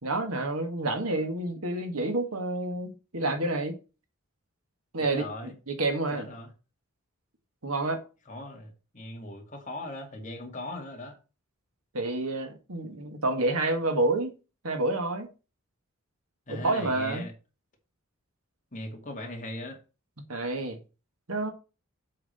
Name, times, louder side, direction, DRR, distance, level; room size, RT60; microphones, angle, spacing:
voice 1, 0.0-3.7 4.9-6.3 7.6-8.0 11.9-14.4 14.6-15.3 16.5-17.3 20.3-20.8 21.3-21.5, right 2 dB, 90° right, 1.9 m, -29 dB
voice 2, 5.0-5.5 6.1-6.5 8.3-11.2 16.5-17.3 18.7-19.8, left 1 dB, 35° left, 2.3 m, -39 dB
7.5 x 4.9 x 6.7 m
head